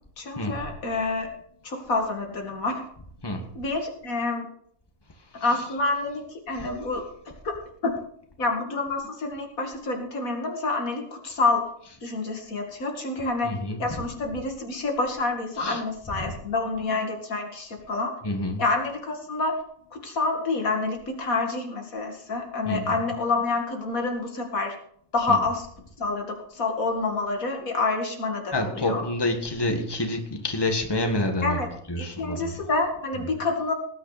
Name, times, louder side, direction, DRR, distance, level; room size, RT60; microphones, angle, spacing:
voice 1, 0.2-1.3 1.6-2.8 3.5-4.5 5.4-7.0 7.4-7.5 7.8-7.9 8.4-11.6 12.0-13.5 13.8-18.1 18.6-19.6 19.9-24.7 25.1-25.7 26.0-29.0 31.4-31.7 32.0-33.7, left 3 dB, 90° left, 2 dB, 2.7 m, -27 dB
voice 2, 13.4-14.0 15.6-15.8 18.2-18.6 22.6-23.0 25.3-25.4 28.5-31.6 31.9-32.5, left 1 dB, 15° left, 3 dB, 1.7 m, -28 dB
18.5 x 9.8 x 4.2 m, 0.67 s
omnidirectional pair, 1.4 m